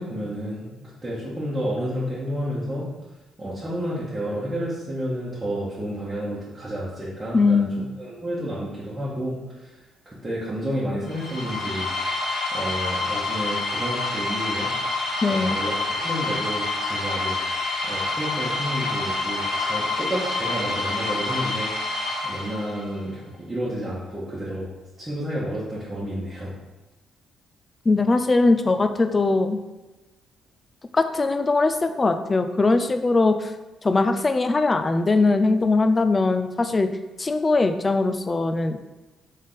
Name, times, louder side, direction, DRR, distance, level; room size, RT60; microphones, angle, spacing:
voice 1, 0.0-2.9 3.4-7.7 8.0-9.8 10.0-14.7 15.3-17.4 17.8-22.0 22.2-24.7 25.0-26.5, equal, 20° right, -9 dB, 1.2 m, -30 dB
voice 2, 7.3-7.8 15.2-15.6 27.9-29.6 30.9-33.5 33.8-36.9 37.2-38.8, left 3 dB, 25° left, 8 dB, 0.4 m, -21 dB
sound 1, 11.1-22.9, left 2 dB, 65° left, 1.1 m, -27 dB
3.7 x 3.5 x 3.9 m, 1.1 s
cardioid pair, 90°, 0 cm